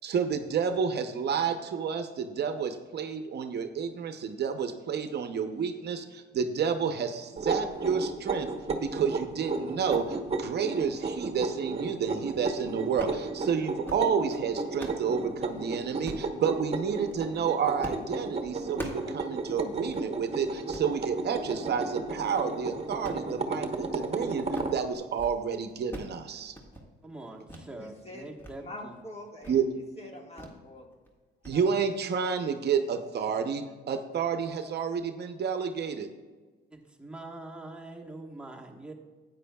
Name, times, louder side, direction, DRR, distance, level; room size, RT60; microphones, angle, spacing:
voice 1, 0.0-8.5 8.8-24.5 24.7-26.5 29.5-29.6 31.4-36.1, right 6 dB, 55° right, 8 dB, 0.7 m, -30 dB
sound 1, 7.4-24.8, right 3 dB, 30° right, 1.0 m, -34 dB
sound 2, 13.0-13.2 13.7-14.1 14.5-15.1 16.0-16.3 16.9-17.2 17.8-18.1 18.4-19.1 19.5-19.6 19.9-20.0 20.5-20.9 21.4-21.7 22.1-22.5 22.9-24.1 24.4-24.8 25.1-25.4 25.6-26.2 26.4-26.9 27.5-27.7 28.1-28.5 28.9-29.0 29.4-29.6 30.4-30.6 30.9-31.1 31.4-31.6, equal, 10° left, 1.8 m, -43 dB
voice 2, 27.0-29.0 36.7-38.9, right 2 dB, 5° right, 0 dB, 1.3 m, -44 dB
voice 3, 27.8-28.3 28.6-30.9 31.5-32.0, left 1 dB, 30° left, 1 dB, 1.7 m, -45 dB
12.5 x 9.1 x 2.3 m, 1.4 s
cardioid pair, 90°, 20 cm